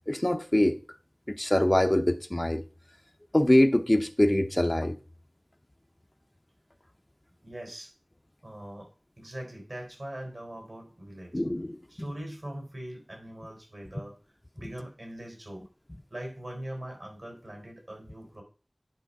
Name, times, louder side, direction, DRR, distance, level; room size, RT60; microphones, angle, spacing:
voice 1, 0.1-0.8 1.3-2.6 3.3-5.0 11.3-11.8, left 1 dB, 30° left, 0.6 m, -23 dB
voice 2, 7.4-7.9 8.4-8.9 9.2-11.4 11.9-14.2 14.5-15.7 16.1-18.4, right 1 dB, 70° right, 4.2 m, -41 dB
10.5 x 5.6 x 3.8 m
wide cardioid pair, 40°, 0 cm